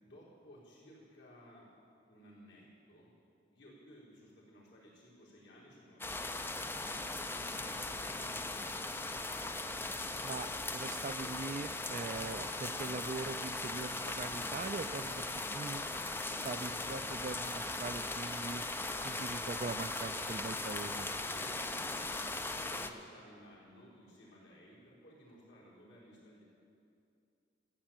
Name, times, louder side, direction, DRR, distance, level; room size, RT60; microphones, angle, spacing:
voice 1, 0.0-1.7 2.1-3.1 3.5-6.7 7.3-9.2 21.0-26.6, equal, 70° left, -6 dB, 4.4 m, -57 dB
sound 1, 6.0-22.9, left 2 dB, 10° left, 0.5 m, -39 dB
voice 2, 10.2-15.8 16.4-18.6 19.0-21.1, right 4 dB, 40° right, 12 dB, 0.4 m, -42 dB
14.5 x 7.7 x 8.9 m, 2.5 s
head